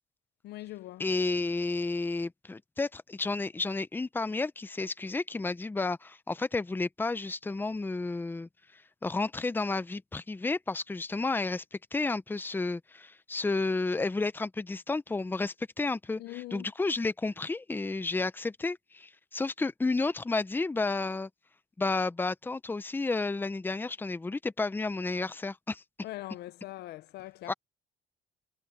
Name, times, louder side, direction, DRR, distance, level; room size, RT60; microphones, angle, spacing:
voice 1, 0.4-1.0 16.2-16.7 26.0-27.5, left 16 dB, 75° left, 0.6 m, -42 dB
voice 2, 1.0-11.6 11.9-21.3 21.8-25.8 27.5-27.6, left 3 dB, 10° left, 0.7 m, -31 dB
cardioid pair, 110°, 17 cm